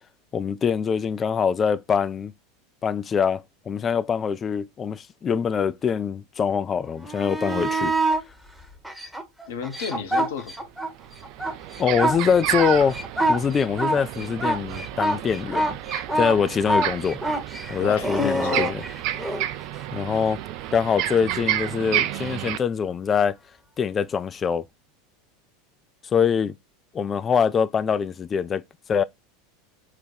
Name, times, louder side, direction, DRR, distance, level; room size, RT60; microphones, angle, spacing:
voice 1, 0.3-2.3 2.8-7.9 11.8-13.0 13.3-15.8 16.1-17.2 17.7-18.8 19.9-20.4 20.7-23.4 23.8-24.7 26.1-26.5 26.9-28.6 28.9-29.0, left 7 dB, 30° left, 0.3 m, -24 dB
sound 1, 7.0-8.2 8.8-10.9 11.2-19.4 22.2-22.3, right 1 dB, 5° right, 0.9 m, -25 dB
voice 2, 9.5-10.7 17.8-18.8, left 7 dB, 65° left, 0.8 m, -32 dB
sound 2, 10.5-10.6 11.0-22.6, right 13 dB, 50° right, 0.4 m, -31 dB
4.1 x 2.2 x 4.2 m
figure-of-eight pair, 80°, 0 cm